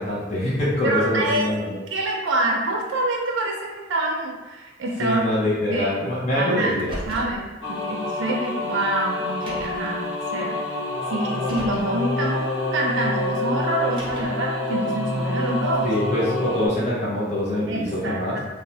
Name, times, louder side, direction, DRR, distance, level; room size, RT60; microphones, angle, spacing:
voice 1, 0.0-1.7 5.0-6.9 15.8-18.4, left 1 dB, 40° left, -7 dB, 0.6 m, -24 dB
voice 2, 0.8-1.5 1.9-5.3 5.7-5.9 6.4-6.8 7.1-7.4 7.7-10.0 10.3-10.6 11.1-12.4 12.7-16.1 17.7-18.4, right 2 dB, 70° right, -1 dB, 0.4 m, -26 dB
Car, 6.7-7.4 8.5-8.6 9.3-9.9 11.2-11.9 13.7-14.5, equal, 25° right, 0.6 m, -37 dB
sound 1, 7.6-16.7, left 2 dB, 85° left, 1.0 m, -27 dB
3.0 x 2.0 x 2.7 m, 1.2 s
head